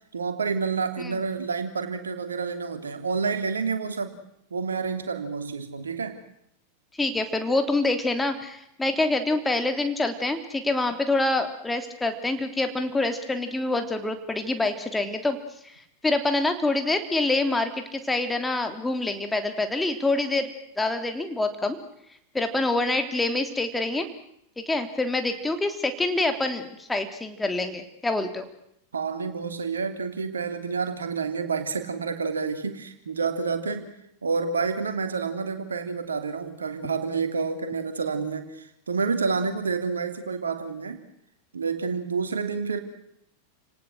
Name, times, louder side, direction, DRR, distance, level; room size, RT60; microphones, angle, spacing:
voice 1, 0.1-4.2 4.5-6.2 28.9-33.9 34.2-41.0 41.5-42.8, right 5 dB, 70° right, 8 dB, 3.0 m, -29 dB
voice 2, 7.0-15.4 15.6-20.5 20.8-21.8 22.3-24.1 24.6-28.5, left 2 dB, 10° left, 7 dB, 3.2 m, -26 dB
29.5 x 18.5 x 7.9 m, 0.76 s
figure-of-eight pair, 90°, 0 cm